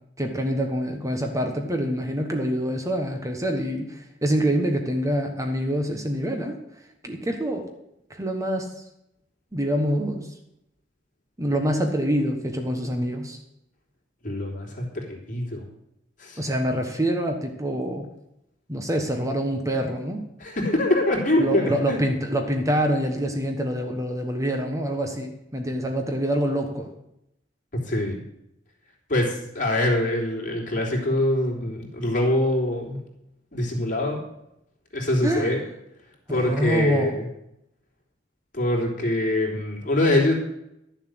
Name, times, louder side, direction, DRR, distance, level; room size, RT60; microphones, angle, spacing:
voice 1, 0.2-6.6 7.0-7.7 8.1-8.8 9.5-10.3 11.4-13.4 16.4-18.0 18.7-20.2 21.4-26.9 35.2-35.6 36.3-37.2, equal, 20° right, 5 dB, 1.3 m, -26 dB
voice 2, 14.2-15.6 16.2-16.4 20.4-22.0 27.7-28.2 29.1-33.0 33.5-34.2 34.9-35.6 36.3-37.3 38.5-40.3, left 1 dB, 45° left, -1 dB, 3.5 m, -24 dB
12.0 x 7.5 x 7.9 m, 0.82 s
head